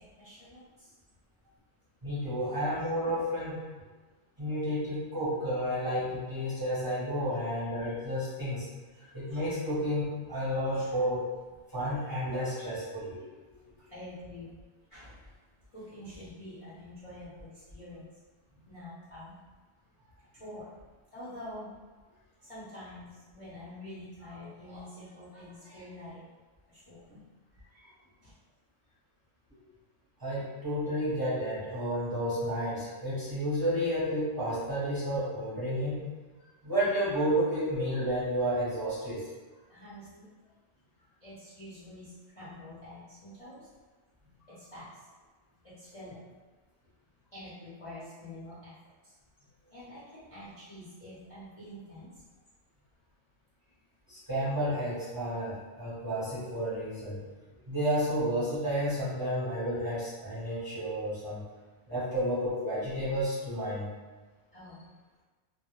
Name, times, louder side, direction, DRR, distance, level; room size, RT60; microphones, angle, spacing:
voice 1, 0.2-0.9 2.4-2.6 13.8-14.6 14.9-15.3 15.7-18.1 18.7-19.3 20.4-20.7 21.1-21.7 22.4-26.3 26.7-27.0 28.2-28.3 39.7-40.3 41.2-43.6 44.6-44.9 45.6-46.2 47.3-48.7 49.7-52.1 64.5-64.9, left 1 dB, 40° left, -12 dB, 0.5 m, -46 dB
voice 2, 2.0-3.6 4.4-8.7 9.1-11.3 11.7-13.3 27.1-27.2 27.8-27.9 30.2-36.0 36.6-39.3 54.1-57.2 57.7-61.4 61.9-63.9, equal, 20° right, -11 dB, 0.7 m, -31 dB
2.1 x 2.0 x 2.9 m, 1.3 s
omnidirectional pair, 1.2 m